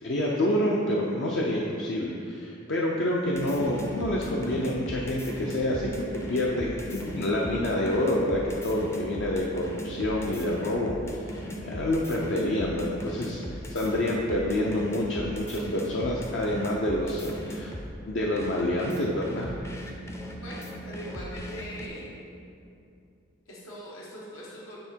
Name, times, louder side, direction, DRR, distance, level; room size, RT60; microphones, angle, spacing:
voice 1, 0.0-17.7 18.1-19.5, left 1 dB, 60° left, -3 dB, 0.5 m, -28 dB
sound 1, 3.3-17.9 18.4-21.9, equal, 15° left, 0.4 m, -38 dB
voice 2, 20.4-22.1 23.5-24.8, equal, 85° left, -5 dB, 1.3 m, -41 dB
7.8 x 3.5 x 4.4 m, 2.6 s
head